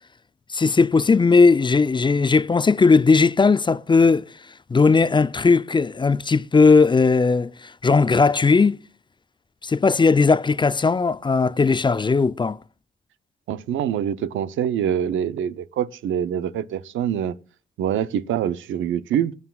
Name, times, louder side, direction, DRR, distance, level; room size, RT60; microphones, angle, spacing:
voice 1, 0.5-4.3 4.7-8.8 9.6-12.6, left 4 dB, 25° left, 0.4 m, -17 dB
voice 2, 13.5-17.4 17.8-19.3, right 9 dB, 85° right, 0.6 m, -25 dB
20.5 x 9.5 x 2.4 m
cardioid pair, 65°, 20 cm